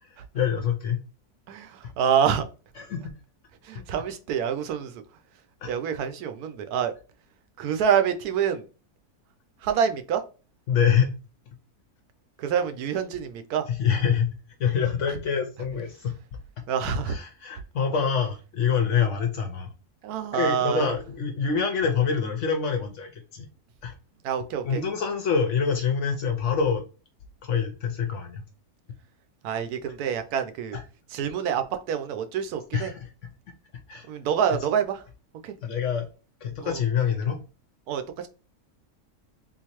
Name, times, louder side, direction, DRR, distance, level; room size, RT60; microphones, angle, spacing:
voice 1, 0.0-1.0 2.8-3.1 5.6-5.7 10.7-11.1 13.7-16.1 17.0-19.7 20.3-23.5 23.8-23.9 24.6-26.8 27.4-28.4 30.7-30.8 32.7-33.1 33.9-34.1 35.6-36.1 36.4-37.4, left 6 dB, 65° left, 0.8 m, -26 dB
voice 2, 1.5-2.5 3.6-5.0 5.6-6.9 7.6-8.6 9.6-10.2 12.4-13.6 16.7-17.2 20.0-20.9 24.2-24.8 29.4-30.8 31.1-32.9 34.1-35.0 35.4-35.5 36.6-36.8 37.9-38.3, right 8 dB, 80° right, 1.1 m, -26 dB
3.7 x 2.6 x 2.9 m
omnidirectional pair, 1.6 m